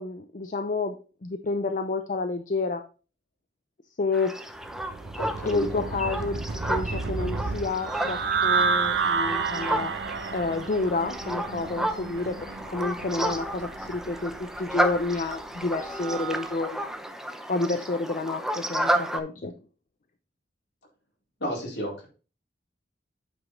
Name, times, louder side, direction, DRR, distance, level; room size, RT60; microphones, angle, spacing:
voice 1, 0.0-2.8 4.0-4.4 5.5-9.9 10.3-16.9 17.5-19.5, left 3 dB, 45° left, 7 dB, 0.6 m, -30 dB
sound 1, 4.1-19.2, right 1 dB, 5° right, 0.7 m, -32 dB
sound 2, 4.6-16.5, right 5 dB, 80° right, 0.8 m, -31 dB
voice 2, 5.1-5.9 21.4-22.0, equal, 65° left, -3 dB, 4.2 m, -32 dB
8.9 x 5.0 x 3.9 m, 0.35 s
head